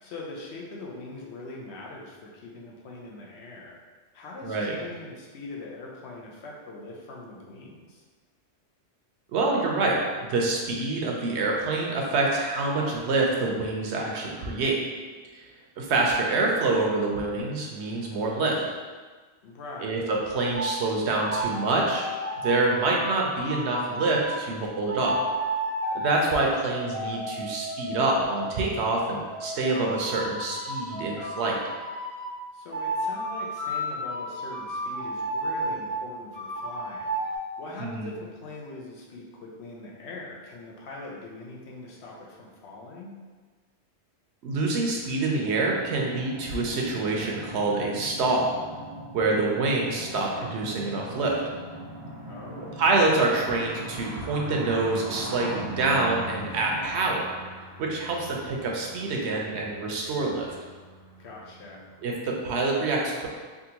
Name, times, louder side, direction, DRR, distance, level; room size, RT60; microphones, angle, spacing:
voice 1, 0.0-3.8 4.1-8.0 19.4-20.0 32.5-37.2 37.6-43.1 52.3-52.8 61.2-61.8, left 2 dB, 75° left, -3 dB, 0.9 m, -42 dB
voice 2, 4.4-4.7 9.3-14.8 15.4-15.5 15.8-18.6 19.8-22.1 22.4-25.2 25.9-31.6 37.8-38.1 44.4-48.6 49.1-51.4 52.8-57.3 57.8-60.6 62.0-63.3, right 3 dB, 75° right, -1 dB, 0.9 m, -26 dB
sound 1, 20.5-20.8 21.1-24.4 24.9-28.6 29.3-32.3 32.7-35.9 36.3-37.4, right 1 dB, 55° left, 1.6 m, -32 dB
sound 2, 45.4-56.9, right 1 dB, 15° right, 0.6 m, -41 dB
sound 3, 50.3-62.0, right 2 dB, 50° right, 0.4 m, -42 dB
3.6 x 2.4 x 2.8 m, 1.4 s
omnidirectional pair, 1.2 m